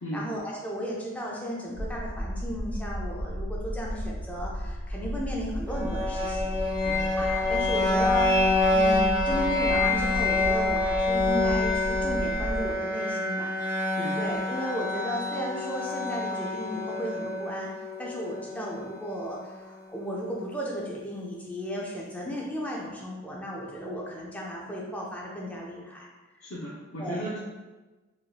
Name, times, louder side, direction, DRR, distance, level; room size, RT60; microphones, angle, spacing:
voice 1, 0.1-6.6 7.2-8.3 8.7-13.5 14.2-26.1 27.0-27.4, equal, 5° left, -3 dB, 0.4 m, -35 dB
sound 1, 1.7-12.8, equal, 70° right, 0.7 m, -34 dB
sound 2, 5.7-19.6, left 2 dB, 10° right, 0.9 m, -27 dB
voice 2, 26.4-27.4, equal, 70° left, -7 dB, 0.5 m, -35 dB
3.0 x 2.8 x 2.2 m, 1.2 s
head